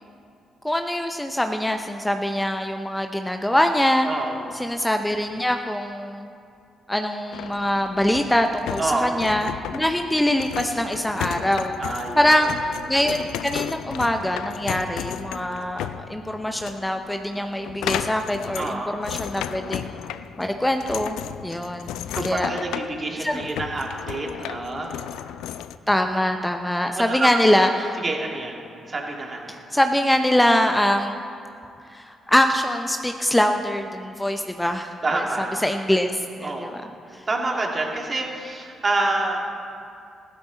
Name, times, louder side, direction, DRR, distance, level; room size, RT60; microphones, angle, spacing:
voice 1, 0.6-4.1 4.5-6.3 6.9-11.7 12.2-19.9 20.4-21.2 21.4-22.5 23.2-23.4 25.9-28.0 29.5-31.2 31.9-35.2 35.6-36.8 37.1-37.2, left 1 dB, 10° left, 5 dB, 0.8 m, -23 dB
voice 2, 4.0-4.6 8.8-9.3 11.8-12.6 18.5-19.1 22.1-25.0 26.9-27.6 28.0-29.6 35.0-35.6 36.4-36.8 37.3-39.4, right 2 dB, 40° right, 0 dB, 2.6 m, -28 dB
sound 1, 7.3-25.8, left 10 dB, 75° left, 0.3 m, -34 dB
15.5 x 12.5 x 4.1 m, 2.4 s
hypercardioid pair, 45°, 0 cm